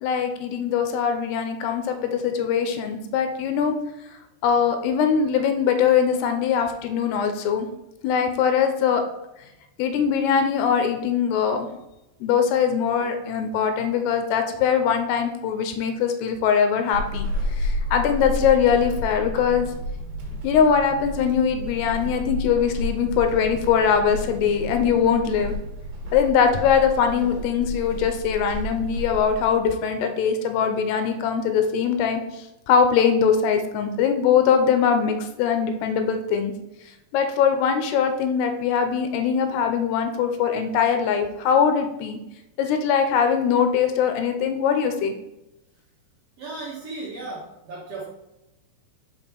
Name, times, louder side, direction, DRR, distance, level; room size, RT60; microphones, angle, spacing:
voice 1, 0.0-3.8 4.4-7.7 8.0-9.0 9.8-11.7 12.2-19.7 20.4-25.5 26.1-36.5 37.1-42.2 42.6-45.1, left 7 dB, 80° left, 6 dB, 2.6 m, -22 dB
Walk footsteps / Squeak, 16.9-29.6, equal, 65° right, 2.0 m, -31 dB
voice 2, 46.4-48.1, right 2 dB, 85° right, -5 dB, 1.3 m, -35 dB
5.7 x 5.4 x 4.5 m, 0.92 s
omnidirectional pair, 5.0 m